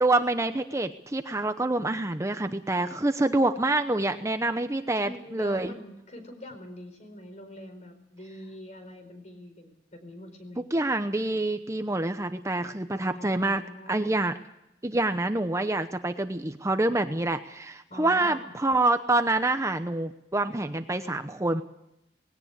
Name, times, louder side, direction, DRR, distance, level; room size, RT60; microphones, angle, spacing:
voice 1, 0.0-5.7 10.7-13.6 13.9-14.3 14.8-21.6, right 2 dB, 15° right, 8 dB, 0.8 m, -26 dB
voice 2, 5.0-10.7 13.1-14.1 17.9-18.5, left 1 dB, 40° left, 7 dB, 4.6 m, -44 dB
19.5 x 17.5 x 8.2 m, 0.82 s
head